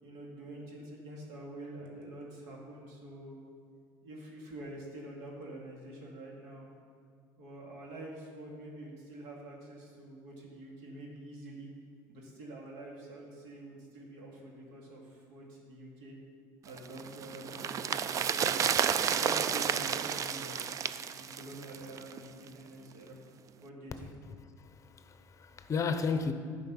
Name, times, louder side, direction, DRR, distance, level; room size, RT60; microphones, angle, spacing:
voice 1, 0.0-3.4 4.0-6.7 7.4-11.7 12.1-16.2 16.7-18.7 19.2-20.5 21.1-23.2 23.6-24.1, right 1 dB, 85° right, 2.4 m, -46 dB
sound 1, 16.8-22.2 22.5-22.6, right 8 dB, 40° right, 0.4 m, -31 dB
voice 2, 24.6-26.3, left 5 dB, 35° left, 0.7 m, -33 dB
10.5 x 5.2 x 7.1 m
supercardioid pair, 105°, 9 cm